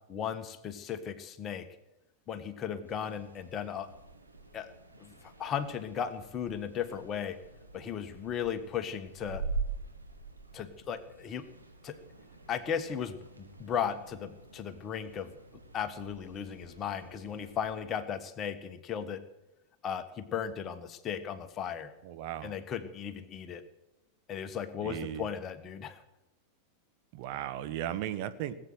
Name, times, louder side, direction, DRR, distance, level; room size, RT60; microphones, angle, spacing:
voice 1, 0.1-1.7 2.3-3.9 4.5-4.7 5.0-7.4 7.7-9.4 10.5-11.5 11.8-12.0 12.5-15.4 15.7-19.2 19.8-21.9 22.4-23.6 24.3-26.0, left 8 dB, 30° left, 10 dB, 1.4 m, -36 dB
sound 1, 2.8-17.8, right 4 dB, 85° right, 2.2 m, -44 dB
voice 2, 22.0-22.5 24.8-25.3 27.1-28.5, right 11 dB, 45° right, 10 dB, 1.1 m, -36 dB
19.5 x 8.9 x 7.8 m, 0.96 s
figure-of-eight pair, 90°, 0 cm